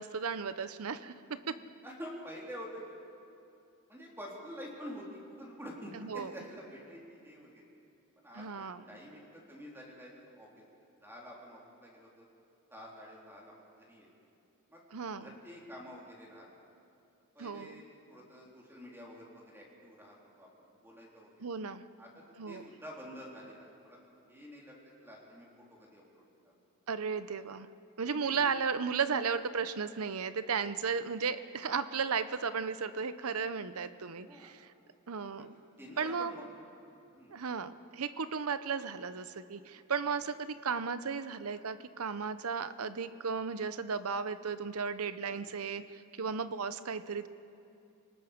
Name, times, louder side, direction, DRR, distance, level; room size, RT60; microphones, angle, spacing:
voice 1, 0.0-1.6 5.9-6.3 8.3-8.8 14.9-15.3 17.4-17.7 21.4-21.8 22.4-22.7 26.9-27.7 28.0-34.7 35.1-35.5 36.0-36.3 37.3-47.3, right 5 dB, 75° right, 13 dB, 0.8 m, -35 dB
voice 2, 1.2-1.5 1.8-2.9 3.9-7.6 8.2-10.5 11.0-12.3 12.7-14.1 14.7-14.8 15.2-16.5 17.4-21.5 22.0-22.1 22.5-24.7 25.0-26.5 28.2-28.5 34.3-34.5 35.4-36.4 37.1-37.4 40.0-40.1 45.3-45.5, equal, 10° right, -4 dB, 3.8 m, -48 dB
28.5 x 19.0 x 5.2 m, 2.7 s
head